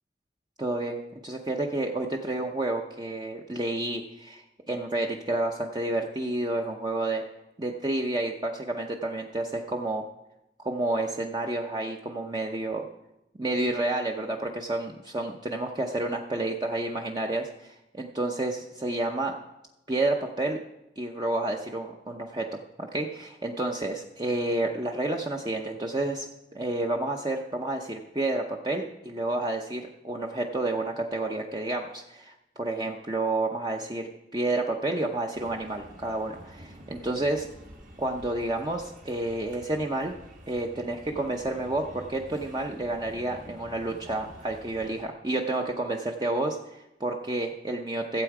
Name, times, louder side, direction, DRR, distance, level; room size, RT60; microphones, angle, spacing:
voice 1, 0.6-7.2 7.6-10.0 10.6-12.8 13.4-19.3 19.9-20.6 21.0-22.5 22.8-26.2 26.5-37.5 38.0-40.1 40.5-48.2, right 2 dB, 25° right, 2 dB, 0.6 m, -30 dB
sound 1, 35.3-45.0, equal, 45° right, 1.6 m, -49 dB
15.5 x 8.1 x 4.8 m, 0.92 s
head